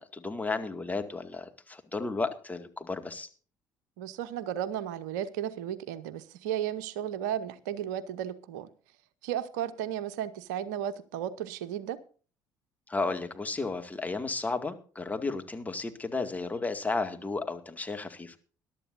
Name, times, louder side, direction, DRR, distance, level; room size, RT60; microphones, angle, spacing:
voice 1, 0.0-3.3 12.9-18.4, left 3 dB, 15° left, 7 dB, 2.1 m, -33 dB
voice 2, 4.0-8.7 9.2-12.0, right 10 dB, 70° right, 15 dB, 0.9 m, -34 dB
22.0 x 12.0 x 2.6 m, 0.39 s
figure-of-eight pair, 55°, 10 cm